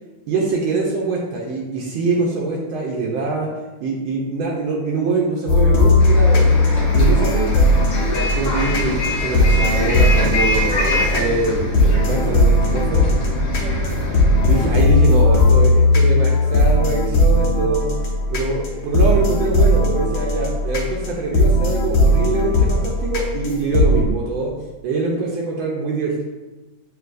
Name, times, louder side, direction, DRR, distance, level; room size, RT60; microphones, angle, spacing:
voice 1, 0.3-3.5 3.8-6.6 6.9-7.7 8.3-13.1 14.5-17.9 18.3-24.5 24.8-26.2, right 3 dB, 75° right, -2 dB, 1.4 m, -23 dB
sound 1, 5.5-24.0, left 2 dB, 85° left, 1.7 m, -17 dB
Bus, 6.0-14.7, left 1 dB, 60° left, 1.8 m, -24 dB
7.6 x 2.7 x 2.5 m, 1.1 s
omnidirectional pair, 2.3 m